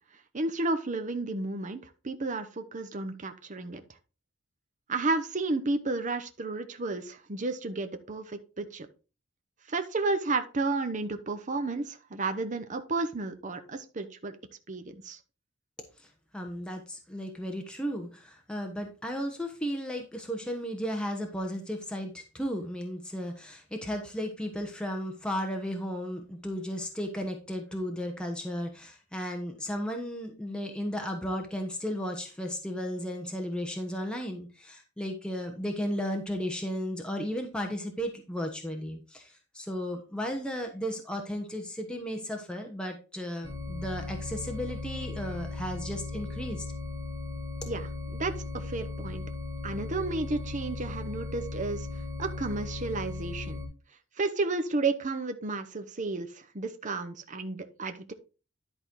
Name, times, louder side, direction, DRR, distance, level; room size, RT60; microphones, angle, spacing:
voice 1, 0.3-3.8 4.9-8.9 9.7-14.4 14.7-15.2 47.7-49.2 49.6-51.9 52.2-53.6 54.2-58.1, right 3 dB, 40° right, 7 dB, 0.8 m, -32 dB
voice 2, 16.3-46.7, equal, 5° left, 2 dB, 1.1 m, -34 dB
sound 1, 43.4-53.7, left 3 dB, 20° right, 2.2 m, -37 dB
11.0 x 4.3 x 4.6 m, 0.33 s
head